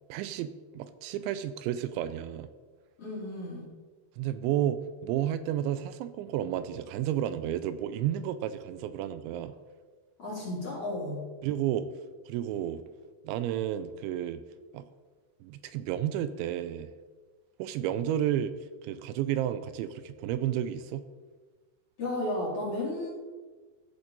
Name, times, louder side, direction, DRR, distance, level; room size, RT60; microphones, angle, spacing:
voice 1, 0.1-2.5 4.2-9.5 11.4-11.9 12.3-12.8 13.2-14.4 14.7-14.9 15.4-16.9 17.6-18.6 18.8-21.1, right 11 dB, 85° right, 12 dB, 2.8 m, -31 dB
voice 2, 3.0-3.7 10.2-11.2 22.0-23.1, left 1 dB, 35° left, -6 dB, 3.5 m, -33 dB
15.0 x 7.1 x 4.0 m, 1.4 s
omnidirectional pair, 5.4 m